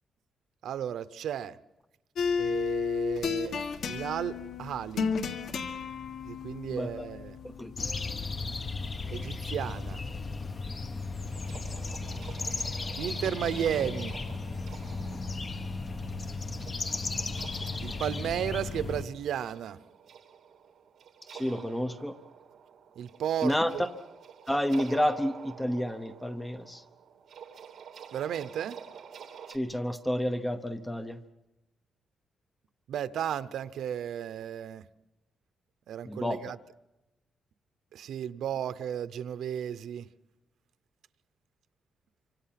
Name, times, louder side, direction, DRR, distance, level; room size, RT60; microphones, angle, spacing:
voice 1, 0.6-1.6 2.4-5.1 6.2-7.4 9.1-10.0 13.0-14.1 17.8-19.8 23.0-23.9 28.1-28.8 32.9-34.9 35.9-36.6 37.9-40.1, right 9 dB, 75° right, 0.8 m, -34 dB
sound 1, 2.2-8.9, left 6 dB, 65° left, 1.7 m, -33 dB
voice 2, 6.7-7.1 7.4-7.9 21.3-22.2 23.4-23.7 24.5-26.8 29.5-31.2 36.0-36.4, equal, 5° left, 0.9 m, -30 dB
sound 2, 7.8-19.0, left 3 dB, 30° left, 1.1 m, -35 dB
sound 3, 11.3-29.6, right 7 dB, 55° right, 3.0 m, -49 dB
26.5 x 25.0 x 5.9 m
cardioid pair, 150°, 0 cm